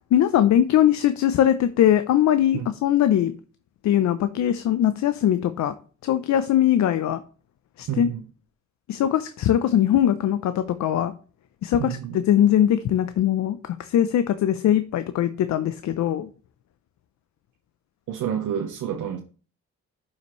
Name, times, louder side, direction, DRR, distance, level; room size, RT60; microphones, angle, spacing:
voice 1, 0.1-3.3 3.8-5.7 6.0-7.2 7.8-8.1 8.9-10.5 10.8-11.1 11.6-12.0 12.3-13.6 13.9-16.3, left 11 dB, 65° left, 0.7 m, -20 dB
voice 2, 7.9-8.2 11.8-12.2 18.1-19.2, right 9 dB, 80° right, 1.1 m, -29 dB
11.5 x 5.8 x 3.1 m
cardioid pair, 90°, 30 cm